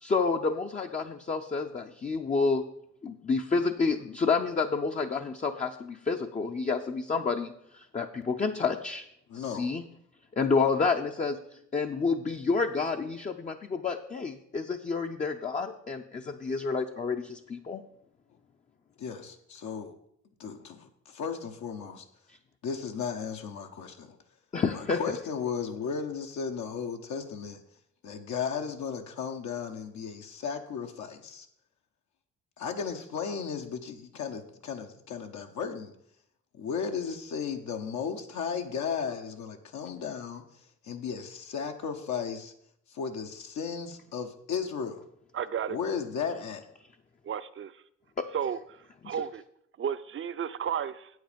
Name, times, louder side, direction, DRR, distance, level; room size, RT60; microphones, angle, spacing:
voice 1, 0.0-9.0 9.3-9.8 10.3-17.8 24.5-25.0 48.2-48.3 49.0-49.2, left 4 dB, 25° left, 4 dB, 0.5 m, -29 dB
voice 2, 9.3-9.7 19.0-19.9 20.4-22.0 22.6-24.2 24.7-27.6 28.0-31.5 32.6-35.9 36.5-40.4 40.8-42.5 42.9-45.0 45.7-46.6, left 6 dB, 70° left, 4 dB, 1.0 m, -35 dB
voice 3, 45.3-45.8 47.3-47.7 48.3-48.6 49.0-49.4 49.8-51.1, right 8 dB, 45° right, 13 dB, 0.6 m, -32 dB
8.5 x 7.8 x 5.2 m, 0.71 s
cardioid pair, 90°, 30 cm